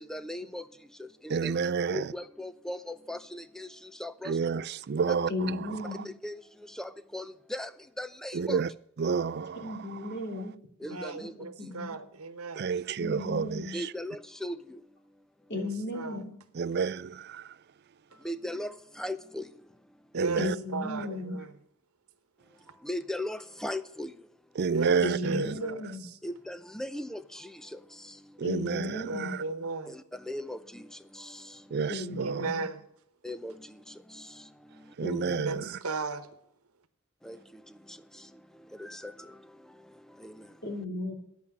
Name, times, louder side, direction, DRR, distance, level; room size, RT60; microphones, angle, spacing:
voice 1, 0.0-1.5 1.9-4.4 5.1-5.2 6.0-8.6 10.8-11.7 13.7-15.5 18.1-20.2 22.5-24.3 26.2-28.4 29.9-31.8 33.2-35.2 37.2-40.7, left 1 dB, ahead, 0.5 m, -40 dB
voice 2, 1.3-2.1 4.2-6.0 8.3-8.7 9.0-10.1 12.5-13.9 16.5-17.6 20.1-20.6 20.9-21.1 24.6-25.6 28.4-29.4 31.7-32.5 35.0-35.8, right 5 dB, 50° right, 0.4 m, -30 dB
voice 3, 5.3-6.0 9.5-10.5 11.2-12.0 13.0-13.8 15.5-16.3 20.4-21.4 25.0-26.1 28.4-29.4 31.9-32.7 35.0-35.7 40.6-41.1, left 2 dB, 50° left, 2.8 m, -35 dB
voice 4, 10.9-12.6 15.6-16.2 20.1-20.4 20.7-21.5 24.7-26.2 29.1-29.9 32.2-32.8 35.4-36.3, right 3 dB, 85° right, 1.1 m, -35 dB
9.8 x 8.4 x 9.7 m
head